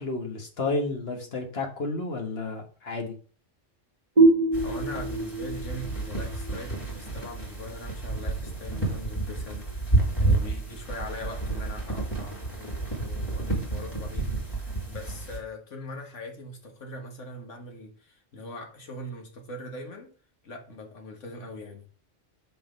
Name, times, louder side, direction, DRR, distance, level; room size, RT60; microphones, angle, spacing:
voice 1, 0.0-3.1, left 3 dB, 55° left, 2 dB, 1.5 m, -31 dB
sound 1, 4.2-7.6, right 2 dB, 30° right, 1.2 m, -24 dB
sound 2, 4.5-15.4, right 2 dB, 20° left, 3.5 m, -30 dB
voice 2, 4.6-20.1 20.4-21.8, left 1 dB, 80° left, 3 dB, 1.9 m, -41 dB
5.8 x 5.0 x 5.1 m, 0.39 s
omnidirectional pair, 1.2 m